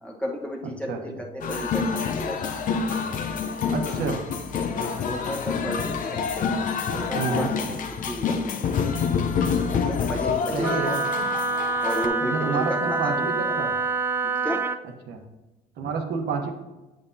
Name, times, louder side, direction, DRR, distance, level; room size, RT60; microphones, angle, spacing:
voice 1, 0.0-2.5 4.0-4.2 5.1-6.2 6.9-7.5 8.1-8.5 9.7-10.7 11.8-13.6 14.2-14.7, equal, 5° left, -1 dB, 1.1 m, -33 dB
sound 1, 1.4-12.1, left 6 dB, 50° left, 0.6 m, -27 dB
voice 2, 3.7-4.2 7.1-7.5 10.5-11.0 12.2-13.7 15.0-15.2 15.8-16.5, right 5 dB, 70° right, 3 dB, 1.1 m, -28 dB
Wind instrument woodwind instrument, 10.6-14.8, right 3 dB, 15° right, 0.3 m, -26 dB
7.7 x 6.8 x 2.7 m, 1.1 s
cardioid pair, 110°, 17 cm